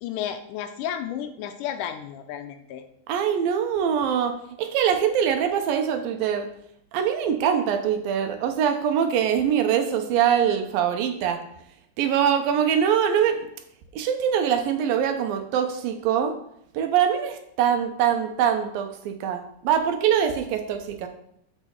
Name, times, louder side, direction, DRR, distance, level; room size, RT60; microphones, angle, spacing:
voice 1, 0.0-2.8, left 10 dB, 80° left, 7 dB, 1.9 m, -32 dB
voice 2, 3.1-6.5 6.9-11.4 12.0-13.4 13.9-16.3 16.7-21.1, right 8 dB, 80° right, 7 dB, 2.5 m, -23 dB
6.3 x 6.1 x 6.9 m, 0.72 s
omnidirectional pair, 4.3 m